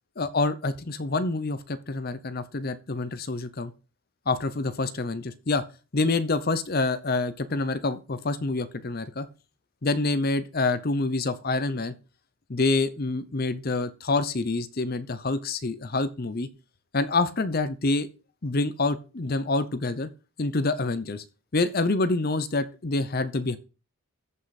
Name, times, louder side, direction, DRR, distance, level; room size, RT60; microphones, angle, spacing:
voice 1, 0.2-3.7 4.3-5.6 5.9-9.3 9.8-11.9 12.5-16.5 16.9-18.1 18.4-20.1 20.4-21.2 21.5-23.6, left 3 dB, 40° left, 13 dB, 0.7 m, -27 dB
14.0 x 5.5 x 4.2 m, 0.33 s
head